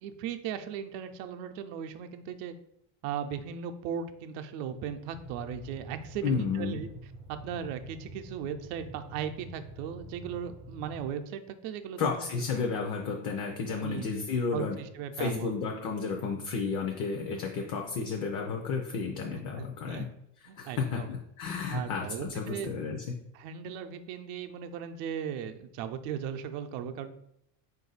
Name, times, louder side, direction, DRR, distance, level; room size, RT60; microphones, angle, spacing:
voice 1, 0.0-2.5 3.0-6.9 7.3-12.2 12.6-12.7 13.8-14.1 14.5-15.5 19.6-20.1 20.5-21.1 21.7-22.7 23.3-27.1, right 8 dB, 85° right, 8 dB, 0.6 m, -37 dB
sound 1, 5.1-11.1, right 2 dB, 15° right, 0.4 m, -47 dB
voice 2, 6.2-6.8 12.0-14.8 15.2-20.0 20.6-23.1, left 5 dB, 45° left, 2 dB, 0.5 m, -32 dB
4.8 x 2.6 x 3.9 m, 0.75 s
cardioid pair, 170°, 46 cm